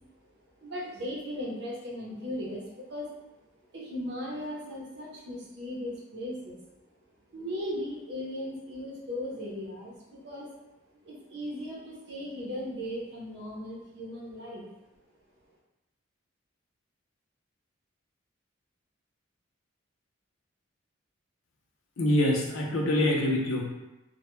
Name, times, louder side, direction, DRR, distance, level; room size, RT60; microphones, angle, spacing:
voice 1, 0.6-3.1 3.7-6.6 7.3-10.5 11.0-14.7, equal, 55° right, -4 dB, 0.7 m, -37 dB
voice 2, 22.0-23.7, left 1 dB, 80° left, -1 dB, 0.5 m, -25 dB
2.1 x 2.1 x 3.0 m, 1.0 s
head